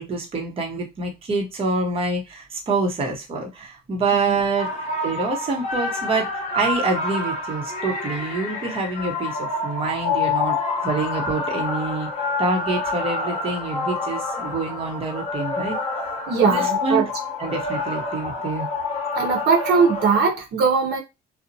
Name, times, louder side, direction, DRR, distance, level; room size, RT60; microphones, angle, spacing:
voice 1, 0.0-10.6 10.8-12.1 12.4-15.8 16.4-17.0 17.4-18.7, right 3 dB, 35° right, 0.8 m, -26 dB
sound 1, 4.6-20.2, left 3 dB, 40° left, 0.8 m, -27 dB
voice 2, 16.3-17.1 19.1-21.0, right 5 dB, 75° right, 0.8 m, -20 dB
2.7 x 2.0 x 2.6 m
cardioid pair, 110°, 17 cm